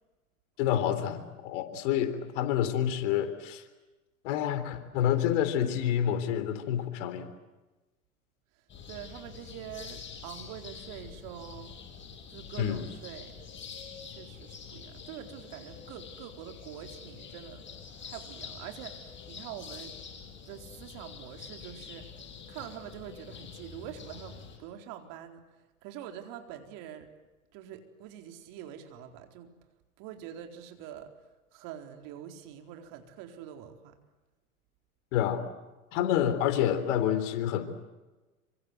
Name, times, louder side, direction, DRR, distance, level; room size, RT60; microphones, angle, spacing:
voice 1, 0.6-3.6 4.2-7.3 12.6-12.8 35.1-35.4 35.9-37.7, left 10 dB, 55° left, 10 dB, 3.8 m, -28 dB
sound 1, 8.7-24.6, left 6 dB, 25° left, 6.8 m, -46 dB
voice 2, 8.9-11.7 12.3-13.3 14.0-17.7 18.0-20.0 20.5-22.0 22.5-25.4 25.8-27.1 27.5-29.5 30.0-31.1 31.5-33.9, right 10 dB, 45° right, 5 dB, 4.3 m, -45 dB
27.0 x 25.5 x 8.0 m, 1.1 s
hypercardioid pair, 105°, 44 cm